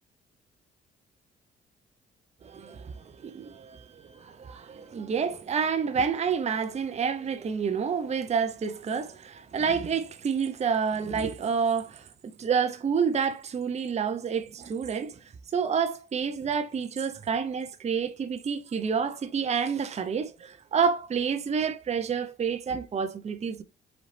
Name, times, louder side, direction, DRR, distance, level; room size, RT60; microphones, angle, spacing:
voice 1, 2.4-15.2 15.5-23.6, right 6 dB, 35° right, 0.6 m, -29 dB
4.0 x 4.0 x 3.3 m
cardioid pair, 90°, 20 cm